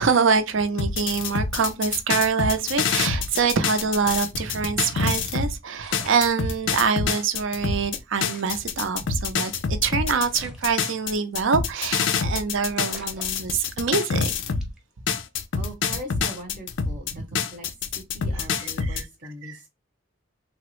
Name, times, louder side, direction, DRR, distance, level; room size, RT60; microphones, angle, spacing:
voice 1, 0.0-14.3 17.1-17.2 18.8-19.0 19.4-19.6, right 5 dB, 70° right, 0.5 m, -25 dB
sound 1, 0.8-5.6 5.9-14.7 15.1-19.0, left 5 dB, 65° left, 0.4 m, -26 dB
sound 2, 2.8-4.0 4.3-4.4 5.5-5.6 5.8-7.0 7.5-7.6 7.7-7.8 8.2-9.7 10.2-11.5 11.8-12.1 12.4-12.5 12.8-14.1 14.6-14.9, equal, 5° right, 0.6 m, -49 dB
voice 2, 15.5-17.7 17.9-19.7, equal, 40° right, 0.8 m, -41 dB
3.4 x 2.0 x 2.9 m
head